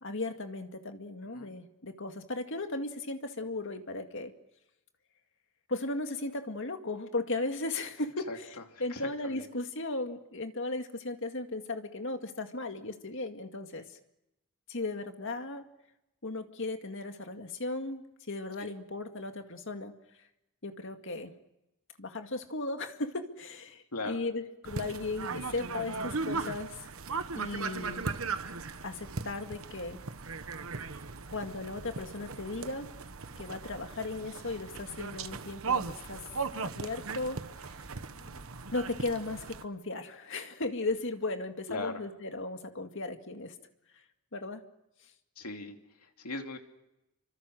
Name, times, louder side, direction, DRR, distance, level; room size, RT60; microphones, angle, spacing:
voice 1, 0.0-4.3 5.7-8.5 8.8-14.0 14.7-15.7 16.2-19.9 20.6-21.3 22.0-26.9 27.3-28.0 28.8-30.0 31.3-32.9 33.4-36.2 36.6-37.4 37.6-37.7 38.7-43.5 44.3-44.6, left 2 dB, 60° left, 6 dB, 2.1 m, -36 dB
voice 2, 8.7-9.5 18.6-18.7 23.9-24.2 34.0-34.3 38.1-38.4 41.7-42.0 45.4-46.6, left 2 dB, 85° left, 4 dB, 2.9 m, -40 dB
sound 1, 24.7-39.6, right 4 dB, 65° right, 1.1 m, -38 dB
28.5 x 25.0 x 6.4 m, 0.90 s
head